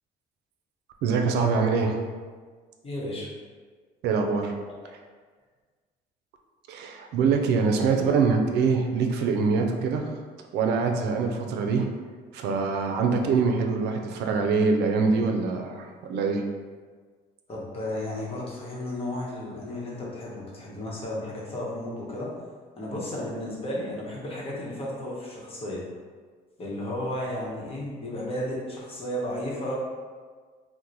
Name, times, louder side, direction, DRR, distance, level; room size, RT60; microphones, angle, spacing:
voice 1, 1.0-2.0 4.0-4.5 6.7-10.2 10.5-11.9 12.3-16.4, right 4 dB, 80° right, 4 dB, 0.4 m, -24 dB
voice 2, 2.8-3.3 8.0-8.1 17.5-22.3 22.8-25.8 26.6-29.8, left 1 dB, 35° left, -4 dB, 1.0 m, -33 dB
2.9 x 2.1 x 3.8 m, 1.5 s
cardioid pair, 110°, 17 cm